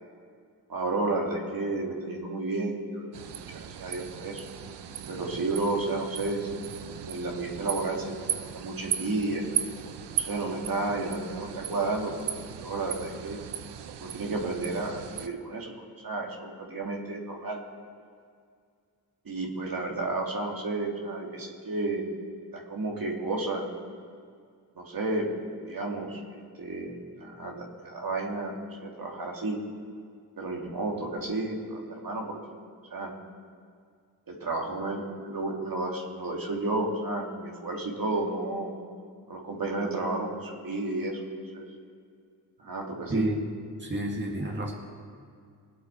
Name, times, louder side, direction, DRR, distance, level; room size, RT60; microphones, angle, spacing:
voice 1, 0.7-4.4 5.1-6.6 7.0-9.4 10.1-13.4 14.0-17.6 19.3-22.0 22.5-23.6 24.8-25.3 25.7-26.2 26.6-29.6 30.4-32.4 32.9-33.1 34.3-38.7 39.3-41.2 41.5-41.6 42.6-43.3, right 2 dB, 55° right, 0 dB, 2.4 m, -32 dB
sound 1, 3.1-15.3, right 10 dB, 85° right, 0.7 m, -37 dB
voice 2, 43.1-43.4 43.8-44.7, right 1 dB, 25° right, 0 dB, 1.9 m, -29 dB
19.5 x 8.0 x 4.3 m, 2.2 s
cardioid pair, 45°, 40 cm